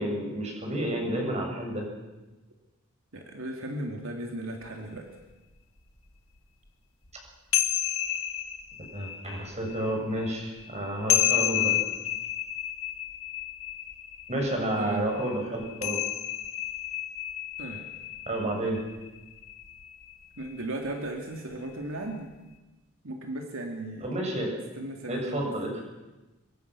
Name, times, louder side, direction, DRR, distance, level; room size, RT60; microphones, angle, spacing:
voice 1, 0.0-1.8 8.9-11.8 14.3-16.0 18.3-18.8 24.0-24.6 25.1-25.8, right 1 dB, 30° right, 0 dB, 6.8 m, -30 dB
voice 2, 3.1-5.1 14.8-15.1 17.6-17.9 20.3-22.3 23.0-24.1 24.7-25.4, right 1 dB, 75° right, 2 dB, 2.8 m, -36 dB
sound 1, 4.6-4.7 5.3-5.4 5.8-5.9 7.0-20.6, left 12 dB, 80° left, 1.7 m, -31 dB
26.0 x 22.5 x 6.3 m, 1.1 s
head